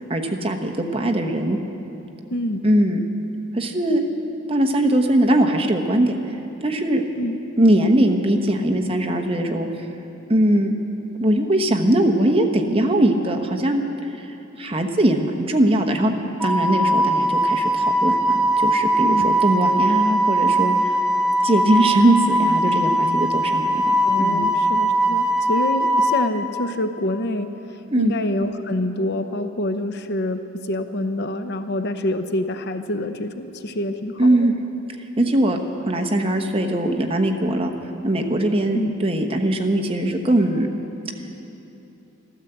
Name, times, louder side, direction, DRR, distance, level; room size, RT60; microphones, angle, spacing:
voice 1, 0.1-1.6 2.6-3.0 3.5-4.0 4.5-6.1 6.6-7.0 7.6-9.7 10.3-10.7 11.2-13.8 14.2-14.3 14.6-16.1 16.4-20.7 21.4-24.5 27.9-28.1 34.2-34.5 35.2-37.7 38.0-40.7, right 1 dB, 30° right, 3 dB, 1.1 m, -20 dB
voice 2, 2.3-2.6 7.2-7.4 19.0-19.3 24.0-27.5 28.0-30.4 30.7-34.5 38.7-39.0, left 1 dB, 55° left, 8 dB, 0.8 m, -26 dB
Wind instrument woodwind instrument, 16.4-26.3, right 1 dB, 5° right, 0.9 m, -20 dB
13.5 x 13.0 x 7.9 m, 2.9 s
head